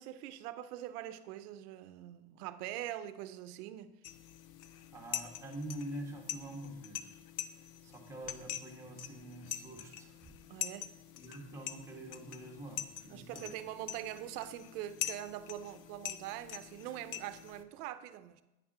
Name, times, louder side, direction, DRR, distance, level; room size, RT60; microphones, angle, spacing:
voice 1, 0.0-3.9 10.5-10.9 13.1-18.4, right 12 dB, 85° right, 0.8 m, -43 dB
sound 1, 4.0-17.6, left 10 dB, 45° left, 0.5 m, -44 dB
voice 2, 4.9-7.2 7.5-10.3 10.6-10.7 11.1-13.5, right 1 dB, 5° right, 1.6 m, -46 dB
9.1 x 5.9 x 5.5 m
supercardioid pair, 140°, 45 cm